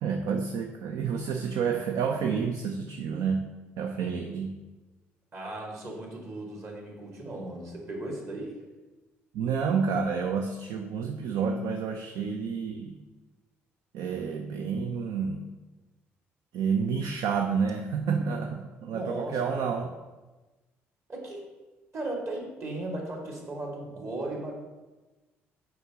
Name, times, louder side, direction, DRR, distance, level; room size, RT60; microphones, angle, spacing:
voice 1, 0.0-4.6 9.3-13.0 13.9-15.5 16.5-19.9, right 6 dB, 65° right, 4 dB, 0.5 m, -29 dB
voice 2, 5.3-8.5 18.9-19.8 21.1-21.4 21.9-24.5, right 2 dB, 50° right, -1 dB, 2.2 m, -36 dB
6.7 x 4.8 x 3.7 m, 1.2 s
hypercardioid pair, 50°, 6 cm